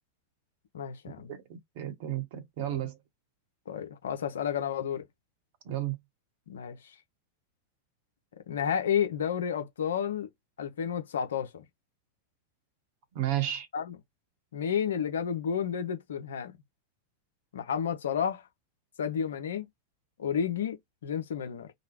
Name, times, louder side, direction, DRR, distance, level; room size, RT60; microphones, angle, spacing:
voice 1, 0.7-1.3 2.7-2.8 3.7-5.0 6.5-6.9 8.5-10.3 10.6-11.6 13.7-14.0 14.5-16.5 17.5-18.5 19.0-19.6 20.2-21.7, left 8 dB, 65° left, 0.7 m, -31 dB
voice 2, 1.3-3.0 5.6-6.0 13.1-13.7, right 13 dB, 50° right, 1.0 m, -32 dB
3.0 x 2.2 x 2.9 m
figure-of-eight pair, 90°, 0 cm